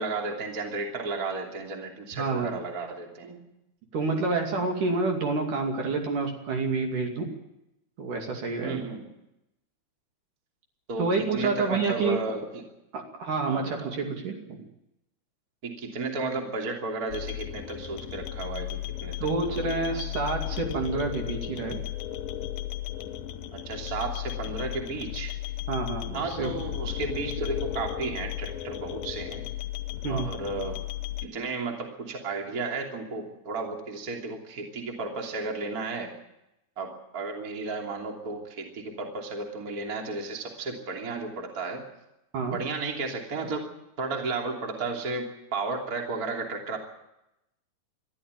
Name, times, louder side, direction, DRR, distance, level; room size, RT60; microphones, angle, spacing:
voice 1, 0.0-3.5 8.6-9.1 10.9-12.6 13.4-14.0 15.6-20.0 23.5-25.4 26.1-29.4 30.1-30.8 31.2-36.1 36.8-41.8 42.4-43.7 44.0-46.8, right 3 dB, 25° right, 1 dB, 2.9 m, -33 dB
voice 2, 2.1-2.5 3.9-7.3 8.0-8.9 11.0-12.2 12.9-14.6 19.2-21.8 25.7-26.5 30.0-30.3 42.3-42.6, right 3 dB, 55° right, 2 dB, 3.9 m, -28 dB
sound 1, 17.1-31.3, left 13 dB, 70° left, 2.4 m, -35 dB
22.0 x 13.5 x 9.1 m, 0.87 s
omnidirectional pair, 4.5 m